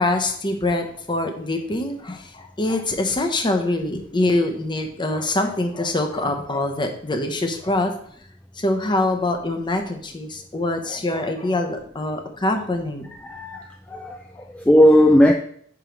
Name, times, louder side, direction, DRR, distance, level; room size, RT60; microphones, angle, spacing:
voice 1, 0.0-7.9 8.6-13.1 14.3-14.4, left 2 dB, 25° left, 5 dB, 0.8 m, -24 dB
voice 2, 13.2-14.2 14.5-15.3, equal, 5° left, 3 dB, 0.3 m, -16 dB
4.8 x 4.7 x 5.1 m, 0.62 s
head